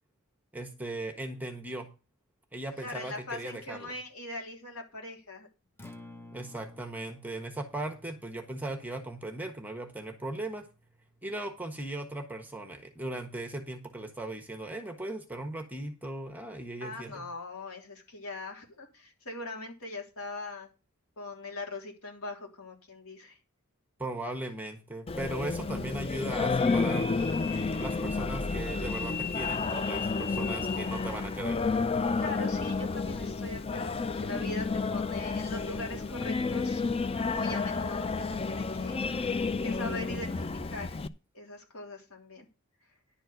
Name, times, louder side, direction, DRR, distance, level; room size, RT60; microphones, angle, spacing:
voice 1, 0.5-1.9 2.5-3.9 6.3-10.7 11.2-17.3 24.0-27.1 27.8-31.6, right 1 dB, 10° right, 5 dB, 1.3 m, -38 dB
voice 2, 2.8-5.5 16.8-20.7 21.2-23.4 32.2-36.8 37.1-39.1 39.6-41.0 41.3-42.5, left 2 dB, 85° left, 0 dB, 3.4 m, -41 dB
Acoustic guitar, 5.7-13.8, left 1 dB, 10° left, 1.2 m, -55 dB
Singing, 25.1-41.1, left 4 dB, 25° left, 0.4 m, -31 dB
sound 1, 26.6-31.3, left 6 dB, 55° left, 4.4 m, -40 dB
11.0 x 4.5 x 7.8 m, 0.31 s
head